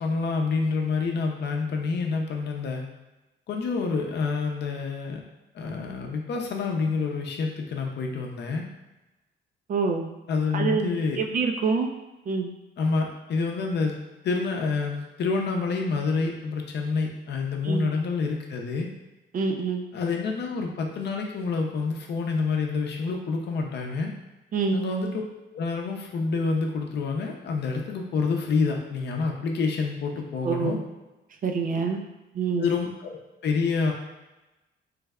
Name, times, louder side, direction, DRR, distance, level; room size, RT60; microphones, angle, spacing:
voice 1, 0.0-2.8 3.5-5.2 5.5-8.6 10.3-11.2 12.8-13.9 14.2-18.9 19.9-24.1 24.7-25.2 25.5-30.8 32.6-33.9, left 4 dB, 60° left, 1 dB, 0.6 m, -27 dB
voice 2, 9.7-10.1 10.5-11.9 12.3-12.5 17.6-17.9 19.3-19.9 24.5-24.9 30.4-30.8 31.4-32.0 32.3-32.7, right 4 dB, 45° right, 4 dB, 0.4 m, -26 dB
3.3 x 2.1 x 3.5 m, 1.0 s
cardioid pair, 90°, 20 cm